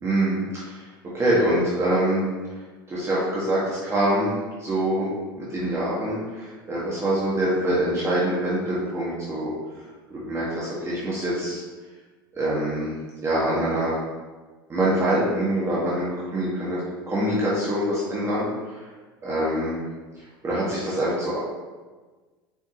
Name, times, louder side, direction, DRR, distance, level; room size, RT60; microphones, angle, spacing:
voice 1, 0.0-0.9 1.1-2.2 2.9-4.3 4.6-5.1 5.5-9.5 10.1-11.6 12.3-12.9 13.2-14.0 14.7-16.8 17.1-18.8 19.2-19.8 20.2-21.4, right 1 dB, 20° right, -7 dB, 1.8 m, -25 dB
7.2 x 5.5 x 3.0 m, 1.3 s
figure-of-eight pair, 75°, 12 cm